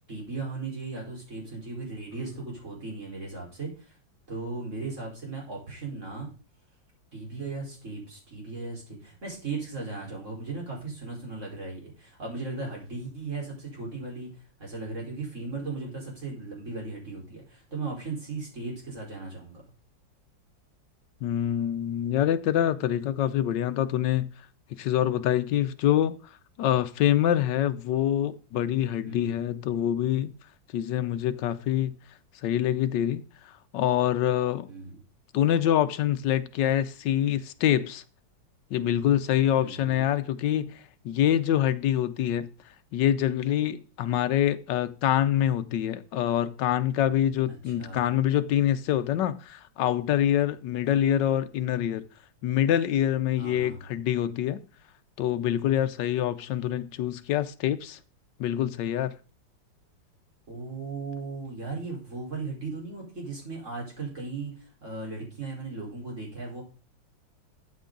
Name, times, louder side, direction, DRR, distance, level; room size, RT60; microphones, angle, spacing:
voice 1, 0.1-3.9 4.3-6.3 7.1-14.3 14.6-19.6 29.0-29.4 34.7-35.0 39.6-40.1 47.5-48.1 53.4-53.8 60.5-66.6, right 3 dB, 40° right, 4.8 m, -37 dB
voice 2, 21.2-24.3 24.7-26.2 26.6-30.3 30.7-31.9 32.4-34.7 35.3-38.0 38.7-42.5 42.9-52.0 52.4-54.6 55.2-58.0 58.4-59.1, left 11 dB, 75° left, 1.3 m, -25 dB
13.0 x 8.4 x 3.9 m
omnidirectional pair, 2.1 m